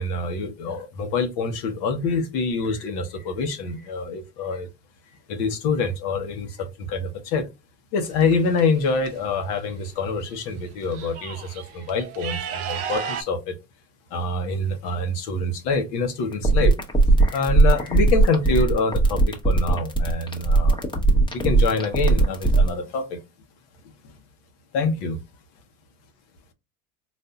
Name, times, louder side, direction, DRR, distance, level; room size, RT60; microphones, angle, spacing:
voice 1, 0.0-4.7 5.3-7.5 7.9-13.6 14.1-16.7 17.2-20.8 21.3-23.2 24.0-24.1 24.7-25.2, left 3 dB, 70° left, 1.0 m, -26 dB
sound 1, 8.0-9.1 10.2-10.3 10.7-13.2, right 7 dB, 65° right, 0.8 m, -34 dB
sound 2, 16.3-22.7, right 3 dB, 10° left, 0.9 m, -18 dB
4.1 x 2.6 x 2.3 m
supercardioid pair, 105°, 40 cm